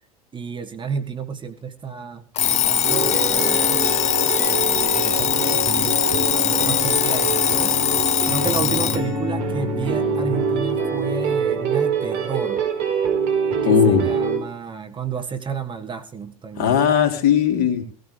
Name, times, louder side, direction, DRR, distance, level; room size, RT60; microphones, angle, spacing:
voice 1, 0.3-2.2 2.5-3.8 4.3-7.8 8.2-12.6 13.6-16.8, right 5 dB, 25° right, 6 dB, 1.6 m, -31 dB
Alarm, 2.4-9.1, left 9 dB, 35° left, 0.8 m, -21 dB
sound 1, 2.8-14.4, right 4 dB, 55° right, 4.3 m, -25 dB
voice 2, 13.7-14.0 16.6-17.8, left 8 dB, 55° left, 4 dB, 3.3 m, -18 dB
19.0 x 15.5 x 3.4 m, 0.39 s
hypercardioid pair, 80°, 20 cm